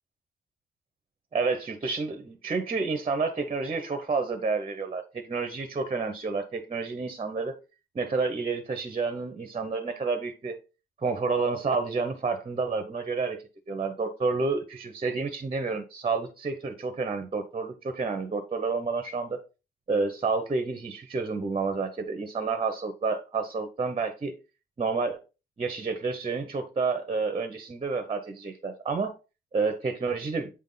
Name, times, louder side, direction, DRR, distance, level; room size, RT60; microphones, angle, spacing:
voice 1, 1.3-7.6 7.9-10.6 11.0-19.4 19.9-24.3 24.8-25.2 25.6-29.1 29.5-30.5, right 4 dB, 30° right, 1.0 m, -29 dB
8.2 x 3.6 x 4.0 m
cardioid pair, 90°, 20 cm